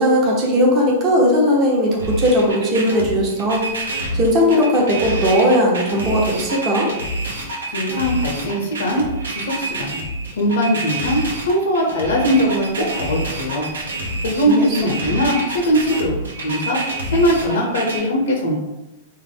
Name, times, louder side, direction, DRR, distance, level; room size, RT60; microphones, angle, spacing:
voice 1, 0.0-6.9 14.5-14.9, equal, 35° right, -2 dB, 0.7 m, -18 dB
sound 1, 2.0-18.0, right 1 dB, 80° right, 0.6 m, -27 dB
voice 2, 7.7-10.0 10.4-13.7 14.2-16.8 17.1-18.6, equal, 75° left, 0 dB, 0.5 m, -20 dB
2.3 x 2.0 x 3.4 m, 1.0 s
hypercardioid pair, 105°, 0 cm